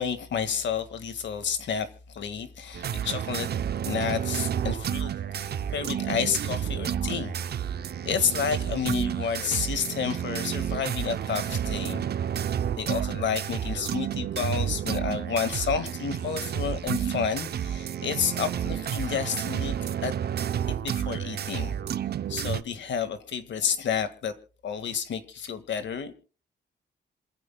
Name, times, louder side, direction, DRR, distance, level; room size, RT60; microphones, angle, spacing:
voice 1, 0.0-3.5 3.8-7.3 8.0-12.0 12.8-19.8 20.0-20.1 20.7-21.8 22.3-24.3 24.6-26.1, left 7 dB, 90° left, 1.8 m, -30 dB
sound 1, 2.7-22.6, right 9 dB, 60° right, 0.6 m, -30 dB
Guitar, 6.4-8.5, right 5 dB, 90° right, 2.3 m, -42 dB
27.5 x 15.0 x 2.2 m
wide cardioid pair, 145°, 18 cm